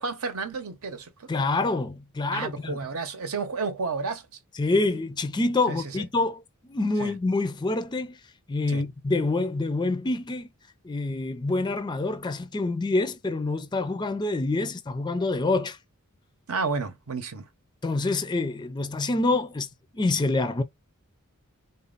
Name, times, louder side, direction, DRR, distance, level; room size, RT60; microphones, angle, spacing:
voice 1, 0.0-1.3 2.3-4.2 5.7-6.0 7.0-7.1 8.7-8.8 16.5-17.5, right 4 dB, 70° right, 0.8 m, -31 dB
voice 2, 1.3-2.8 4.6-6.4 6.7-8.2 8.5-10.5 10.8-15.8 17.8-19.7 19.9-20.6, left 2 dB, 20° left, 0.4 m, -26 dB
4.0 x 2.0 x 3.9 m
head